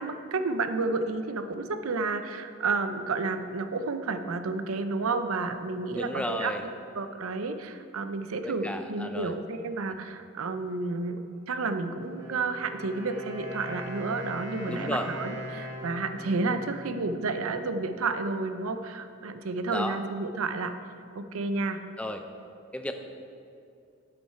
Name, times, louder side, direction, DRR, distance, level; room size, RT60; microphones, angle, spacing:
voice 1, 0.0-6.5 6.9-11.2 11.5-20.7 21.1-21.8, right 3 dB, 80° right, 9 dB, 0.6 m, -31 dB
voice 2, 5.9-6.7 8.4-9.3 14.6-15.1 19.7-20.0 22.0-22.2 22.7-22.9, left 1 dB, 5° left, 6 dB, 0.4 m, -33 dB
Wind instrument woodwind instrument, 12.0-17.8, left 1 dB, 15° right, 1.8 m, -40 dB
10.5 x 7.7 x 4.4 m, 2.6 s
head